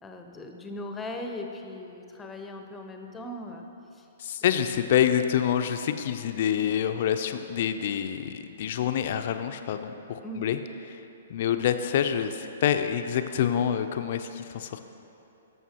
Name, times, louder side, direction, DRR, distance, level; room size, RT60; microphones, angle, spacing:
voice 1, 0.0-3.7 3.9-4.1 10.2-10.6, left 1 dB, 10° left, 4 dB, 0.7 m, -39 dB
voice 2, 4.2-10.6 11.3-14.8, left 9 dB, 55° left, 8 dB, 0.4 m, -27 dB
12.0 x 6.9 x 2.9 m, 2.9 s
figure-of-eight pair, 120°, 0 cm